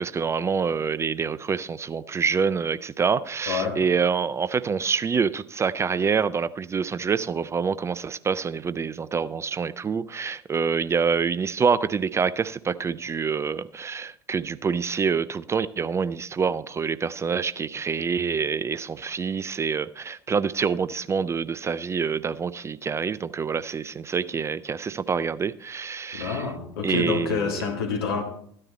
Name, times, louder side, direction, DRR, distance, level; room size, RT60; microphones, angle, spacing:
voice 1, 0.0-26.4 26.8-27.5, right 6 dB, 20° right, 0.4 m, -26 dB
voice 2, 3.5-3.8 26.1-28.2, left 5 dB, 65° left, 2.2 m, -27 dB
14.0 x 9.8 x 4.2 m
figure-of-eight pair, 65°, 13 cm